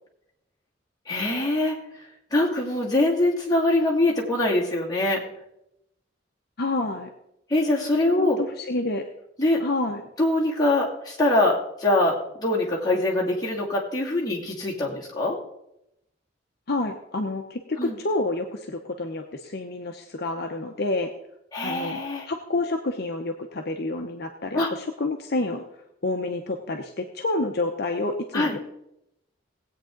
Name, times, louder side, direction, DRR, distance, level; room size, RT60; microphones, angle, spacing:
voice 1, 1.1-1.8 2.3-5.2 7.5-8.4 9.4-9.6 10.2-15.3 17.8-17.9 21.5-22.3 24.5-24.7 28.3-28.5, left 2 dB, 20° left, -4 dB, 2.5 m, -23 dB
voice 2, 6.6-7.1 8.2-9.0 9.6-10.0 16.7-21.1 21.6-25.6 26.0-28.6, left 2 dB, 55° left, 4 dB, 0.8 m, -29 dB
19.0 x 8.4 x 3.9 m, 0.83 s
head